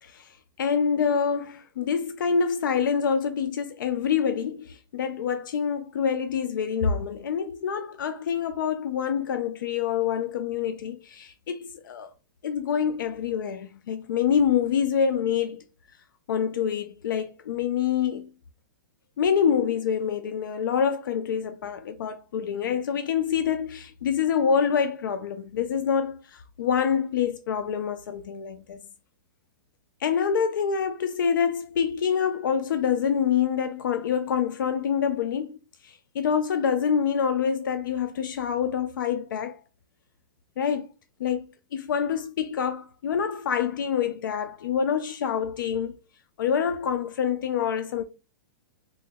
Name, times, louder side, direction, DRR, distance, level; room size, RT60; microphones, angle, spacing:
voice 1, 0.0-12.1 12.4-15.6 16.3-18.3 19.2-28.8 30.0-35.5 35.8-39.6 40.6-40.9 41.2-46.0 46.4-48.0, left 7 dB, 90° left, 0.4 m, -26 dB
3.0 x 2.2 x 3.6 m
hypercardioid pair, 140°, 11 cm